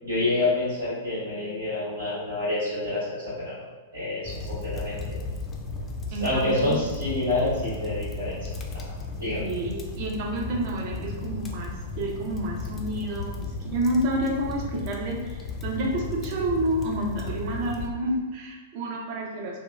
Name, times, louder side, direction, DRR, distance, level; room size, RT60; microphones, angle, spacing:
voice 1, 0.0-3.5 3.9-5.1 6.2-8.8 9.2-9.4, left 2 dB, 90° right, -12 dB, 1.4 m, -28 dB
sound 1, 4.2-17.9, left 3 dB, 20° left, 0.3 m, -35 dB
voice 2, 4.3-4.7 6.1-6.8 9.4-19.6, right 1 dB, 50° right, -1 dB, 0.5 m, -29 dB
2.7 x 2.2 x 2.2 m, 1.3 s
hypercardioid pair, 110°, 0 cm